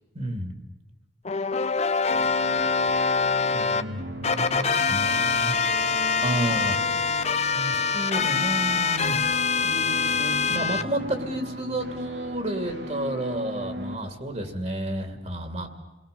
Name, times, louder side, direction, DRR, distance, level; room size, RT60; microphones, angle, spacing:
voice 1, 0.1-0.5 3.5-5.6 6.2-6.8 7.5-15.7, right 1 dB, 40° right, 6 dB, 2.6 m, -31 dB
sound 1, 1.2-3.8 4.2-10.8, left 5 dB, 40° left, 0.9 m, -24 dB
sound 2, 2.1-14.0, right 1 dB, 80° right, 4.0 m, -37 dB
29.0 x 20.5 x 6.9 m, 1.1 s
head